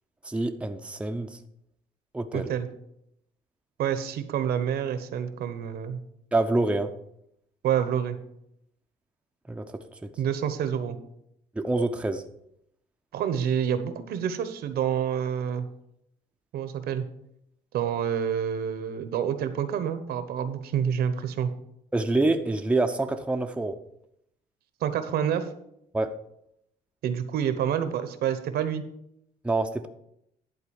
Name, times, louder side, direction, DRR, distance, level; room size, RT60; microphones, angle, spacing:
voice 1, 0.2-1.4 2.1-2.5 6.3-6.9 9.5-10.1 11.6-12.2 21.9-23.8 25.9-26.2 29.4-29.9, right 2 dB, 5° right, 6 dB, 0.7 m, -26 dB
voice 2, 2.3-2.7 3.8-6.0 7.6-8.2 10.2-11.0 13.1-15.7 16.5-17.1 17.7-21.5 24.8-25.5 27.0-28.8, right 8 dB, 70° right, 11 dB, 1.0 m, -28 dB
11.0 x 4.0 x 7.1 m, 0.77 s
cardioid pair, 110°, 17 cm